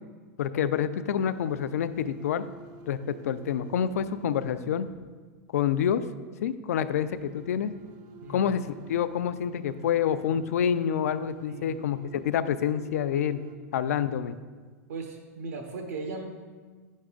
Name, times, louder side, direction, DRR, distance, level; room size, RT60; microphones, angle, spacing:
voice 1, 0.4-2.5 2.9-4.9 5.5-6.0 6.4-7.7 8.3-13.4 13.7-14.4, left 8 dB, 80° left, 12 dB, 0.4 m, -27 dB
sound 1, 1.1-5.0 6.9-13.6, right 6 dB, 50° right, 0.6 m, -49 dB
voice 2, 11.5-11.9 13.6-13.7 14.9-16.2, right 3 dB, 80° right, 2 dB, 0.9 m, -38 dB
9.1 x 6.4 x 2.4 m, 1.5 s
hypercardioid pair, 120°, 8 cm